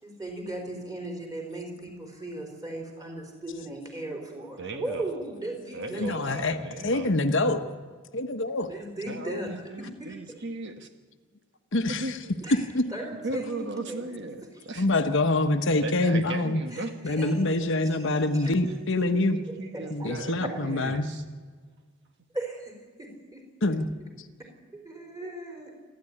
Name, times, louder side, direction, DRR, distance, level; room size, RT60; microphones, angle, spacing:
voice 1, 0.0-6.5 8.7-10.2 12.4-14.2 14.5-14.7 16.7-18.1 18.3-18.5 19.5-20.1 20.4-20.9 22.3-23.4 24.4-25.7, right 1 dB, 15° right, 2 dB, 4.3 m, -38 dB
voice 2, 4.6-5.1 5.7-7.1 9.1-10.9 11.9-12.3 13.1-14.9 15.8-16.9 19.1-21.2, right 2 dB, 50° right, 7 dB, 1.3 m, -36 dB
voice 3, 5.9-6.6 6.8-7.6 8.1-8.7 11.7-12.2 12.7-12.9 14.8-16.6 17.0-19.4 19.9-21.1 23.6-23.9, left 2 dB, 55° left, 8 dB, 1.1 m, -25 dB
28.0 x 11.5 x 10.0 m, 1.5 s
head